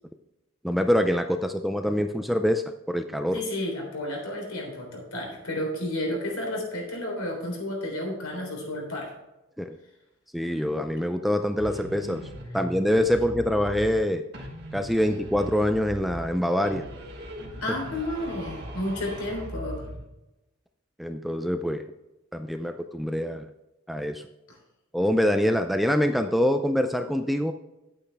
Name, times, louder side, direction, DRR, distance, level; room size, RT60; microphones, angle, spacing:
voice 1, 0.6-3.4 9.6-9.8 10.3-12.2 12.5-14.2 14.7-16.8 21.0-21.8 22.3-23.5 23.9-24.2 24.9-27.5, equal, ahead, 7 dB, 0.4 m, -25 dB
voice 2, 3.3-9.1 17.6-19.9, left 1 dB, 75° left, 0 dB, 3.6 m, -31 dB
sound 1, 11.6-14.1 14.3-16.3 16.6-20.1, equal, 50° right, 1.7 m, -39 dB
10.0 x 8.7 x 3.4 m, 0.97 s
head